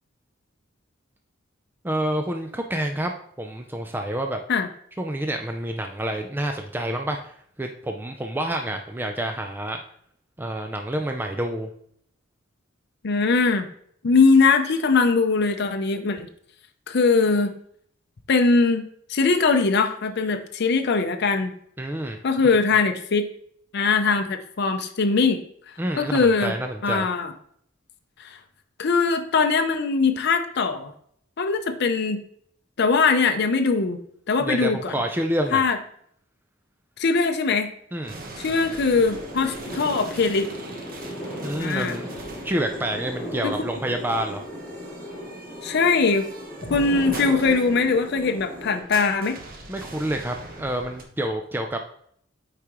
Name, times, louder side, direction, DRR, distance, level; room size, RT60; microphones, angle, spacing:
voice 1, 1.8-3.1 3.4-4.4 5.0-9.8 10.4-11.7 21.8-22.2 25.8-27.1 34.4-35.7 37.9-38.1 41.4-42.1 42.4-44.4 49.7-51.8, right 1 dB, 10° right, 4 dB, 0.4 m, -28 dB
voice 2, 13.0-13.7 14.0-16.3 16.9-17.5 18.3-18.8 19.1-21.5 22.2-23.3 23.7-25.4 26.0-26.5 26.8-27.3 28.2-28.4 28.8-30.9 31.4-32.2 32.8-34.0 34.3-34.9 35.5-35.8 37.0-37.7 38.4-40.5 41.6-42.0 43.4-43.5 45.6-46.3 46.7-49.4, left 4 dB, 55° left, 6 dB, 0.6 m, -21 dB
sound 1, 38.0-51.0, right 2 dB, 45° right, 1.1 m, -41 dB
sound 2, 38.9-48.8, equal, 10° left, 2.4 m, -36 dB
8.2 x 4.9 x 3.0 m, 0.65 s
head